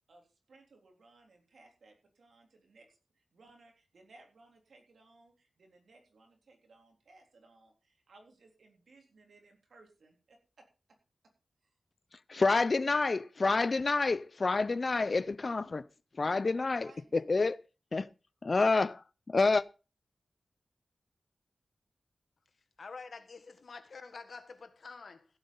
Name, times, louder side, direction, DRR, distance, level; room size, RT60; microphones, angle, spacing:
voice 1, 0.1-10.7 16.8-17.2, right 2 dB, 80° right, 3.6 m, -61 dB
voice 2, 12.3-15.8 16.2-17.6 17.9-18.1 18.4-19.6, left 3 dB, 45° left, 0.6 m, -28 dB
voice 3, 22.8-25.3, left 4 dB, 60° left, 1.7 m, -47 dB
16.0 x 7.8 x 5.4 m
wide cardioid pair, 130°, 0 cm